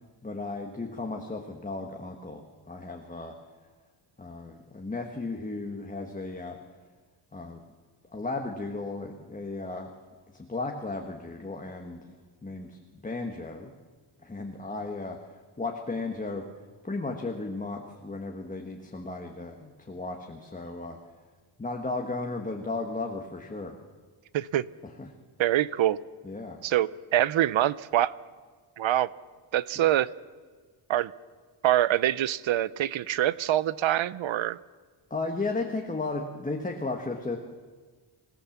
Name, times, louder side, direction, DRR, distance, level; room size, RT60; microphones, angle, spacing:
voice 1, 0.2-3.3 4.2-6.6 7.3-7.6 8.1-9.9 10.3-12.2 12.4-13.7 14.2-16.5 16.8-21.0 21.6-23.8 24.8-25.1 26.2-26.6 35.1-37.4, left 3 dB, 15° left, 2 dB, 1.4 m, -35 dB
voice 2, 25.4-26.0 26.6-28.1 28.8-29.1 29.5-30.1 30.9-31.1 31.6-34.6, right 12 dB, 85° right, 19 dB, 0.7 m, -25 dB
26.5 x 16.5 x 7.3 m, 1.4 s
wide cardioid pair, 150°, 45 cm